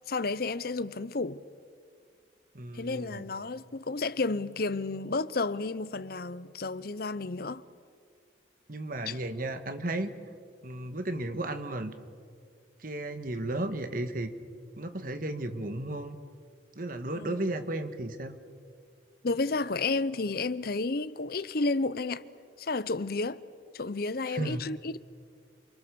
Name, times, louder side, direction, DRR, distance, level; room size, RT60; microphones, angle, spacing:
voice 1, 0.1-1.4 2.7-7.6 9.1-9.2 17.2-17.4 19.2-22.2 22.6-23.4 23.7-25.0, left 3 dB, 55° left, 0.7 m, -31 dB
voice 2, 2.5-3.2 8.7-10.1 10.6-11.9 12.8-14.3 14.8-16.2 16.7-18.4 24.3-24.7, right 1 dB, 50° right, 1.6 m, -34 dB
28.5 x 23.5 x 7.0 m
head